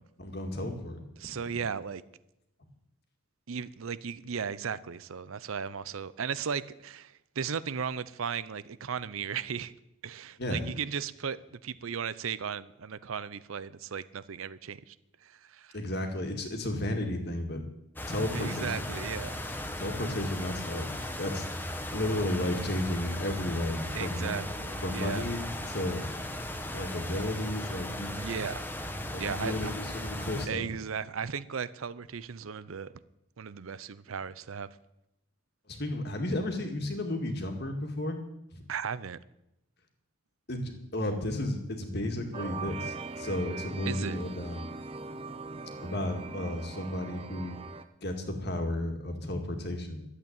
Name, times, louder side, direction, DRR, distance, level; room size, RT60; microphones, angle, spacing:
voice 1, 0.2-1.0 10.4-10.6 15.7-17.6 18.1-18.8 19.8-20.9 21.2-21.5 21.9-24.4 24.8-26.0 26.7-28.1 29.1-30.7 35.7-38.2 38.5-38.6 40.5-44.7 45.8-47.6 48.0-50.1, left 1 dB, 50° left, 2.1 m, -33 dB
voice 2, 1.2-2.0 3.5-9.7 10.0-14.9 15.2-15.8 18.3-19.4 23.9-25.2 28.1-28.7 29.2-29.7 30.5-32.9 33.4-34.7 38.7-39.2 43.9-44.2, right 6 dB, 80° right, 0.6 m, -36 dB
sound 1, 18.0-30.5, left 1 dB, 10° left, 1.0 m, -37 dB
sound 2, 42.3-47.8, right 3 dB, 25° right, 0.7 m, -41 dB
12.5 x 8.2 x 8.9 m
head